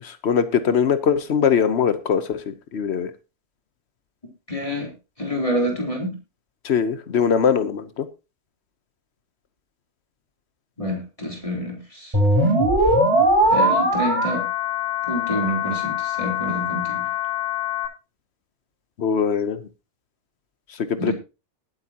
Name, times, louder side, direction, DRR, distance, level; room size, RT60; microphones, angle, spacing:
voice 1, 0.2-3.1 6.6-8.1 19.0-19.6 21.0-21.1, left 7 dB, 85° left, 1.2 m, -21 dB
voice 2, 4.5-4.9 5.2-6.2 10.8-12.2 13.5-14.4 15.1-17.1 21.0-21.1, equal, 30° left, 3.8 m, -27 dB
sound 1, 12.1-17.9, equal, 25° right, 8.1 m, -21 dB
21.0 x 8.2 x 2.9 m
omnidirectional pair, 1.1 m